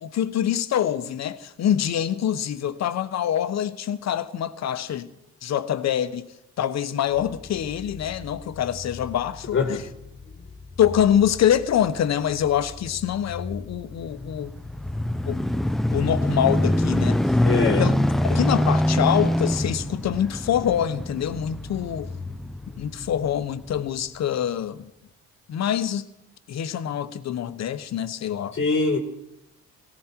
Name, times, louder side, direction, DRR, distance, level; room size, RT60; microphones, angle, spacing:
voice 1, 0.0-5.1 5.4-6.3 6.6-9.8 10.8-14.5 15.3-15.4 15.9-17.2 17.8-17.9 18.3-22.1 22.8-24.9 25.5-26.0 26.5-28.6, left 10 dB, 60° left, 1.0 m, -25 dB
sound 1, 7.1-23.9, left 4 dB, 25° left, 1.1 m, -41 dB
sound 2, 14.2-23.0 23.7-23.8, left 1 dB, ahead, 0.5 m, -24 dB
voice 2, 17.4-17.9 28.5-29.0, left 4 dB, 40° left, 1.6 m, -22 dB
18.0 x 16.0 x 4.5 m
cardioid pair, 90°, 30 cm